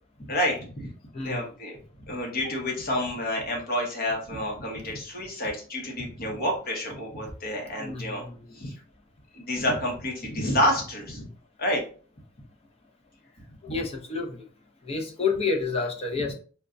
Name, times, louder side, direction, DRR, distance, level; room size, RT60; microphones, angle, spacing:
voice 1, 0.2-0.9 1.2-1.8 2.1-8.2 8.5-8.7 9.3-11.3 11.6-11.8 13.7-13.8 16.2-16.3, left 1 dB, 45° left, 0 dB, 1.1 m, -29 dB
voice 2, 1.1-1.5 7.8-8.3 13.7-14.4 14.9-16.3, left 4 dB, 30° left, 1 dB, 0.6 m, -29 dB
4.2 x 2.2 x 2.5 m, 0.42 s
head